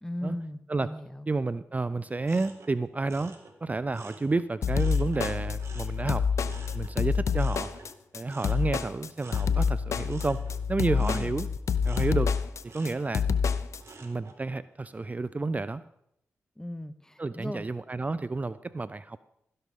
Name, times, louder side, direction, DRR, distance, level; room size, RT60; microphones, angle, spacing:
voice 1, 0.0-1.3 10.9-11.3 16.6-17.7, left 1 dB, 10° left, 14 dB, 0.8 m, -37 dB
voice 2, 1.3-3.3 3.6-6.2 6.7-7.7 8.1-10.4 10.7-11.5 11.8-12.3 12.6-13.2 14.0-15.8 17.2-19.2, right 3 dB, 30° right, 15 dB, 0.4 m, -30 dB
sound 1, 2.2-5.3 5.6-14.4 14.8-15.3, right 3 dB, 65° right, 2.0 m, -51 dB
sound 2, 4.6-13.8, left 6 dB, 75° left, 0.6 m, -27 dB
16.0 x 11.0 x 3.7 m, 0.77 s
cardioid pair, 50°, 5 cm